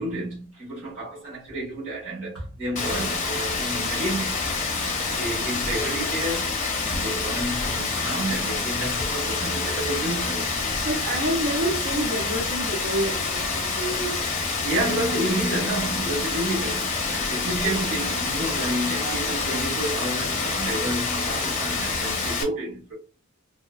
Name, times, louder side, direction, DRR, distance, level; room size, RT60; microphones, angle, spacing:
voice 1, 0.0-4.4 5.1-6.5 6.8-10.5 14.6-22.9, right 1 dB, 75° right, 1.3 m, -30 dB
Rain, 2.8-22.4, left 4 dB, 35° left, 0.6 m, -27 dB
voice 2, 10.8-14.2 19.0-19.2, right 1 dB, 50° right, 0.6 m, -28 dB
2.8 x 2.2 x 2.3 m
head